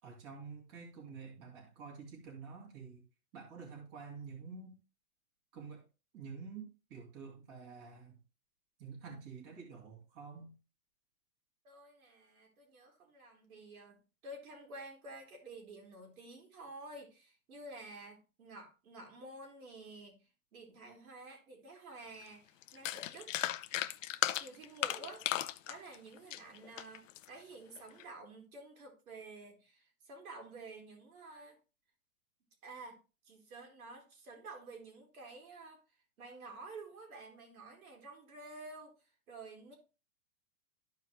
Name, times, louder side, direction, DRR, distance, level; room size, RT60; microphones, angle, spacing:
voice 1, 0.0-3.0 3.3-4.7 5.5-5.8 6.1-8.2 8.8-10.5, right 5 dB, 40° right, 2.7 m, -49 dB
voice 2, 11.6-20.2 20.5-23.3 24.4-25.3 25.7-31.6 32.6-33.0 33.2-35.8 36.2-39.0 39.3-39.8, right 2 dB, 70° right, 3.2 m, -51 dB
sound 1, 22.2-22.3 22.6-27.3 27.8-28.0, left 13 dB, 60° left, 0.6 m, -36 dB
13.0 x 4.7 x 3.0 m
hypercardioid pair, 150°, 45 cm